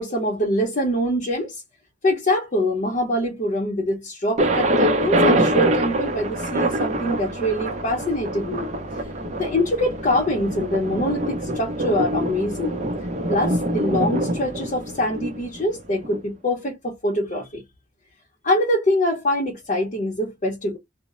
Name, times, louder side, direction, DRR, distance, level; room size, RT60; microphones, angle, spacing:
voice 1, 0.0-1.6 2.0-8.7 8.9-9.1 9.4-12.8 13.3-17.6 18.4-20.8, left 1 dB, 40° left, 0.6 m, -24 dB
Thunder, 4.4-16.2, right 1 dB, 35° right, 0.5 m, -24 dB
2.0 x 2.0 x 3.5 m
head